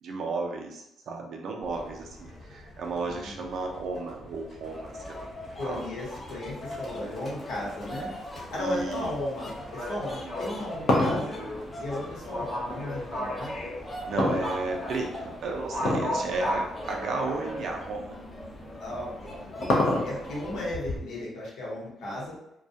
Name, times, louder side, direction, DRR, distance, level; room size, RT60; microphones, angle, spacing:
voice 1, 0.0-5.3 5.6-5.9 6.9-7.1 8.6-9.1 14.1-18.2, right 3 dB, 65° right, 2 dB, 0.5 m, -33 dB
Livestock farm animals working animals, 1.6-21.0, left 1 dB, 45° left, 0.9 m, -39 dB
voice 2, 3.0-3.4 5.5-8.1 8.5-11.4 11.8-13.5 18.8-19.3 19.7-22.3, left 1 dB, 90° left, -5 dB, 1.0 m, -35 dB
sound 1, 4.6-20.7, equal, 20° left, 0.5 m, -42 dB
sound 2, 10.3-12.8 14.2-15.0 15.8-16.2 16.5-16.6 17.4-17.5 18.9-20.4, left 1 dB, 70° left, 0.5 m, -26 dB
2.3 x 2.1 x 2.7 m, 0.84 s
cardioid pair, 90°, 0 cm